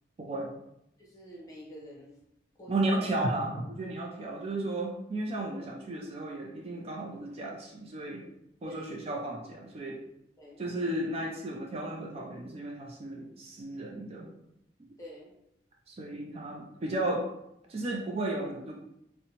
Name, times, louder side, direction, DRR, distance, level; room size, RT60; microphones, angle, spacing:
voice 1, 0.2-0.5 2.7-8.2 8.6-10.0 10.6-14.3 14.8-14.9 15.9-17.3 17.7-18.7, right 1 dB, 35° right, -1 dB, 0.4 m, -34 dB
voice 2, 1.0-2.2 2.6-3.1 8.6-9.0 10.4-10.6 15.0-15.3, equal, 20° left, -5 dB, 0.8 m, -47 dB
2.7 x 2.1 x 2.8 m, 0.79 s
head